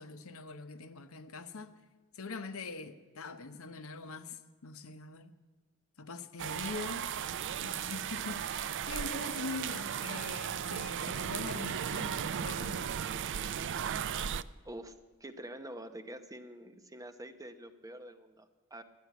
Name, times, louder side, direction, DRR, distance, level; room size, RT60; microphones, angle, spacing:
voice 1, 0.0-1.8 2.1-5.3 6.0-7.1 7.6-13.0, left 4 dB, 70° left, 0.9 m, -43 dB
sound 1, 6.4-14.4, right 8 dB, 55° right, 0.4 m, -36 dB
voice 2, 15.2-18.8, right 1 dB, 15° right, 0.8 m, -46 dB
12.5 x 9.4 x 9.1 m
head